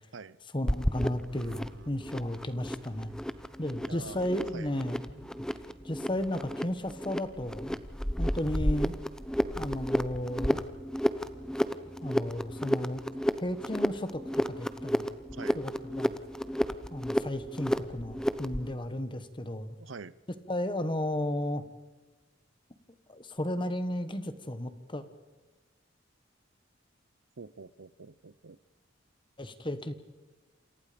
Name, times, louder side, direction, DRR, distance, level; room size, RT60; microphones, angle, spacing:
voice 1, 0.5-3.1 3.6-5.0 5.8-7.8 8.2-9.0 9.6-10.6 12.0-13.0 13.4-15.1 15.5-16.2 16.9-19.7 20.5-21.6 23.1-25.0 29.4-29.9, left 1 dB, 25° left, 11 dB, 1.5 m, -34 dB
sound 1, 0.7-18.7, equal, 5° left, 0.8 m, -32 dB
voice 2, 1.4-2.1 3.8-4.7 15.3-15.6 19.8-20.2 27.4-28.6, right 4 dB, 90° right, 18 dB, 0.7 m, -46 dB
28.0 x 27.5 x 5.2 m, 1.3 s
head